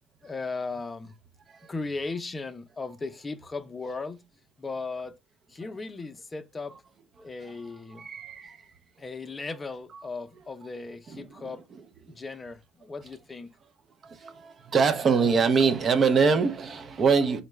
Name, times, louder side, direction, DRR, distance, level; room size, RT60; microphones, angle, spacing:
voice 1, 0.2-1.1 1.7-4.2 4.6-5.1 5.5-6.7 7.2-8.1 9.0-11.6 12.1-13.5, left 3 dB, 25° left, 0.5 m, -36 dB
voice 2, 7.9-8.6 9.9-10.0 11.1-12.1 14.0-17.4, right 5 dB, 45° right, 0.6 m, -25 dB
3.8 x 2.2 x 3.1 m
supercardioid pair, 75°, 0 cm